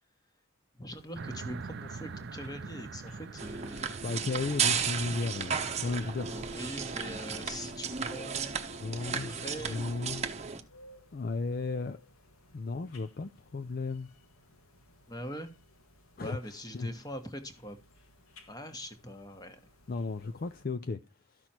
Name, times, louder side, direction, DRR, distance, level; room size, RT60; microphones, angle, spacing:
voice 1, 0.7-4.0 6.3-8.6 9.1-9.9 15.1-15.5 16.2-17.8 18.5-19.6, equal, 15° left, 1.3 m, -42 dB
sound 1, 0.9-20.7, left 1 dB, 80° left, 1.8 m, -58 dB
sound 2, 1.1-8.6, right 4 dB, 50° right, 0.5 m, -46 dB
sound 3, 3.4-10.6, right 6 dB, 30° right, 0.9 m, -34 dB
voice 2, 4.0-6.4 8.8-10.3 11.1-12.0 12.5-14.1 16.2-16.4 16.7-16.9 19.9-21.0 21.3-21.4, left 3 dB, 40° left, 0.4 m, -35 dB
13.0 x 6.2 x 4.4 m
head